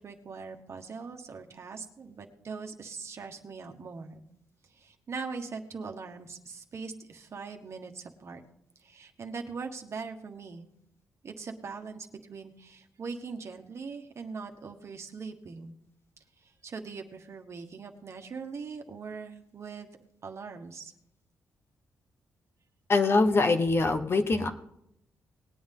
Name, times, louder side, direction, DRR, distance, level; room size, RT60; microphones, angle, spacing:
voice 1, 0.0-4.2 4.7-8.4 8.8-10.7 11.2-15.7 16.4-19.9 20.2-20.9, right 5 dB, 50° right, 4 dB, 1.5 m, -41 dB
voice 2, 22.9-24.5, left 3 dB, 45° left, 8 dB, 1.2 m, -23 dB
19.5 x 8.7 x 3.8 m, 0.77 s
cardioid pair, 70°, 6 cm